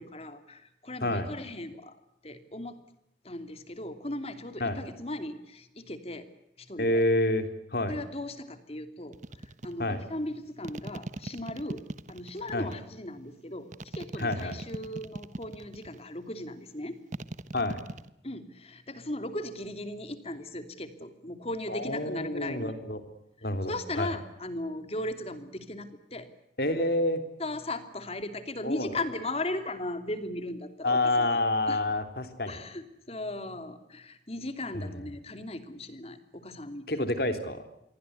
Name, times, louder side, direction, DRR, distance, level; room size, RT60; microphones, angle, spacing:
voice 1, 0.0-2.8 3.2-6.3 6.6-7.0 7.9-17.0 18.2-22.7 23.4-26.3 27.4-31.4 31.7-31.8 32.5-36.9, left 1 dB, 35° left, 9 dB, 2.8 m, -37 dB
voice 2, 6.8-7.9 9.8-10.0 12.5-12.7 14.2-14.6 17.5-17.8 21.7-23.0 23.4-24.1 26.6-27.2 28.6-28.9 30.8-32.6 34.7-35.0 36.9-37.6, left 1 dB, 60° left, 9 dB, 3.6 m, -28 dB
sound 1, 9.1-9.7 10.6-12.8 13.7-16.0 17.1-18.1, right 2 dB, 45° right, 1.1 m, -39 dB
28.0 x 23.0 x 8.2 m, 0.81 s
head